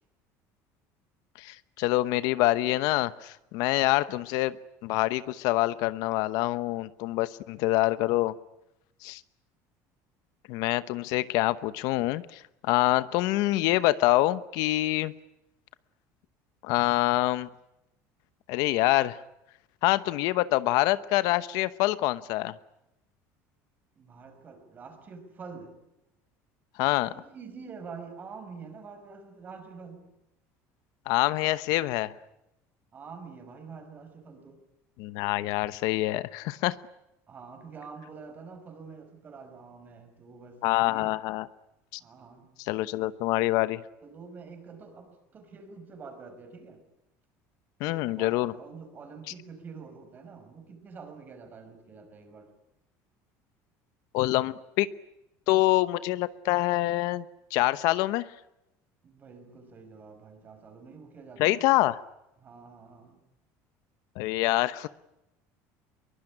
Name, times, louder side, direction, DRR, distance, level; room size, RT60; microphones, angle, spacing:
voice 1, 1.4-4.6 4.8-8.3 9.0-9.2 10.5-15.1 16.6-17.5 18.5-19.2 19.8-22.6 26.8-27.1 31.1-32.1 35.0-36.8 40.6-41.5 41.9-42.0 42.6-43.8 47.8-48.5 54.1-54.9 55.5-57.2 57.5-58.3 61.4-62.0 64.2-64.9, left 17 dB, 70° left, 15 dB, 1.0 m, -26 dB
voice 2, 24.0-25.8 27.0-30.1 32.9-34.6 37.3-41.1 42.0-42.5 44.0-46.8 47.8-52.5 59.0-61.7 62.4-63.2, right 5 dB, 25° right, 8 dB, 5.5 m, -46 dB
23.0 x 22.5 x 10.0 m, 0.89 s
cardioid pair, 160°, 7 cm